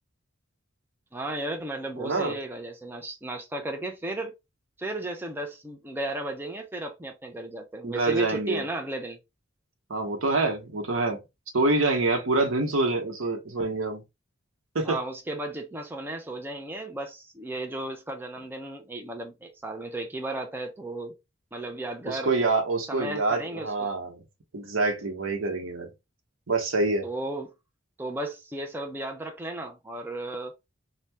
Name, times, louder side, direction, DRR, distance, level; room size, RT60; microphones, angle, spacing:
voice 1, 1.1-4.3 4.8-9.2 14.8-21.1 21.5-22.3 22.9-23.9 27.0-27.5 28.0-30.5, right 1 dB, 10° right, 0.4 m, -34 dB
voice 2, 2.0-2.4 7.8-8.6 9.9-11.2 11.5-14.0 14.7-15.0 22.0-24.2 24.5-25.9 26.5-27.1, right 3 dB, 85° right, 0.9 m, -26 dB
2.7 x 2.2 x 3.3 m
head